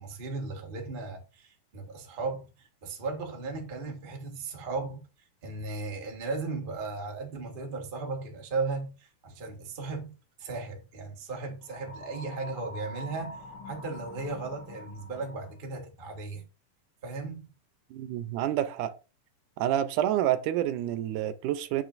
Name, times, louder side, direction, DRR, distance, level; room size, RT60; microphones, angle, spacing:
voice 1, 0.0-5.0 5.4-13.4 13.6-16.4 17.0-17.5, right 3 dB, 45° right, 0.6 m, -36 dB
sound 1, 11.6-15.6, left 1 dB, 85° left, 3.4 m, -45 dB
voice 2, 17.9-18.9 19.6-21.8, right 12 dB, 80° right, 2.1 m, -28 dB
9.1 x 6.2 x 2.5 m
omnidirectional pair, 3.7 m